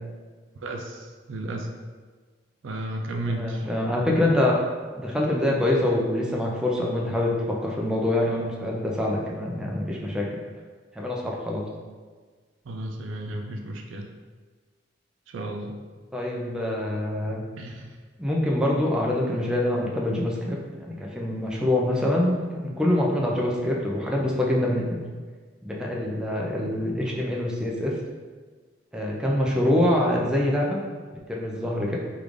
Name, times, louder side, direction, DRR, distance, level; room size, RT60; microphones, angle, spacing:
voice 1, 0.5-1.7 2.6-3.7 12.6-14.1 15.3-15.8 17.6-18.0, right 1 dB, 85° right, 3 dB, 0.4 m, -33 dB
voice 2, 3.3-4.6 5.0-10.3 10.9-11.7 16.1-17.4 18.2-25.1 25.6-27.9 28.9-30.8 31.3-32.0, left 1 dB, 5° right, -3 dB, 0.4 m, -25 dB
3.2 x 2.5 x 3.5 m, 1.4 s
head